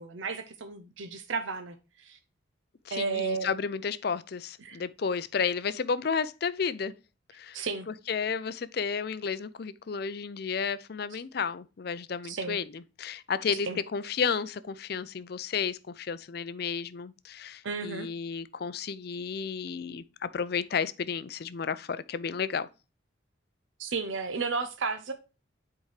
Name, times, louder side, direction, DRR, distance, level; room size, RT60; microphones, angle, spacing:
voice 1, 0.0-2.2 2.9-3.5 4.6-4.8 7.5-7.9 12.2-12.6 13.7-13.8 17.6-18.1 23.8-25.1, right 4 dB, 75° right, 0.7 m, -33 dB
voice 2, 2.9-6.9 7.3-7.6 7.9-22.7, left 6 dB, 50° left, 0.4 m, -32 dB
8.0 x 4.7 x 3.2 m
head